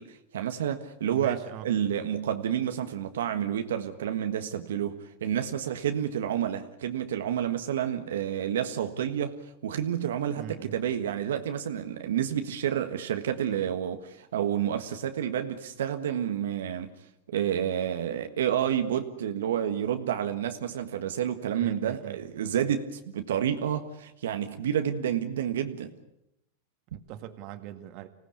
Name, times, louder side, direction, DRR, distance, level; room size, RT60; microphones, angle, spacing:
voice 1, 0.0-16.9 17.3-25.9 26.9-27.0, right 9 dB, 85° right, 1.5 m, -29 dB
voice 2, 1.1-1.7 10.4-10.8 21.6-22.2 26.9-28.1, right 13 dB, 50° right, 2.0 m, -41 dB
25.5 x 17.0 x 8.5 m
supercardioid pair, 135°, 0 cm